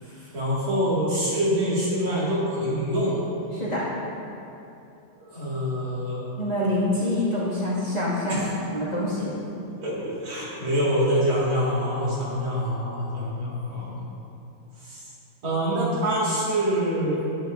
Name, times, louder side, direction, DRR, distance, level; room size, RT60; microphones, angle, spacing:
voice 1, 0.3-3.2 5.2-6.2 8.3-8.4 9.8-14.0 14.8-15.0 15.4-17.3, equal, 90° right, -8 dB, 3.0 m, -25 dB
voice 2, 3.5-3.8 6.4-8.4 8.7-9.3, left 1 dB, 20° left, -10 dB, 2.0 m, -26 dB
9.6 x 9.1 x 2.6 m, 2.8 s
omnidirectional pair, 2.2 m